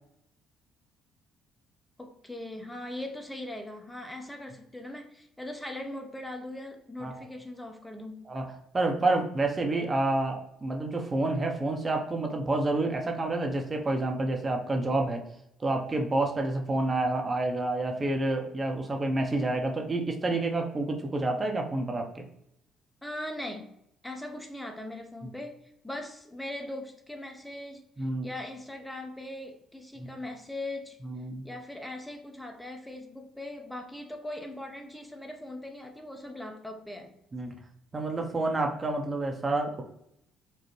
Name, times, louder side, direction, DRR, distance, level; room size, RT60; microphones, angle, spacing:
voice 1, 2.0-8.2 23.0-23.7 24.0-27.8 28.2-31.0 31.4-37.1, left 1 dB, 10° left, 3 dB, 0.6 m, -40 dB
voice 2, 8.7-15.2 15.6-22.2 25.2-25.3 28.0-28.3 30.0-30.1 31.0-31.4 37.3-37.5 37.9-39.8, right 2 dB, 30° right, 3 dB, 0.7 m, -29 dB
4.4 x 2.1 x 3.0 m, 0.76 s
hypercardioid pair, 50°, 0 cm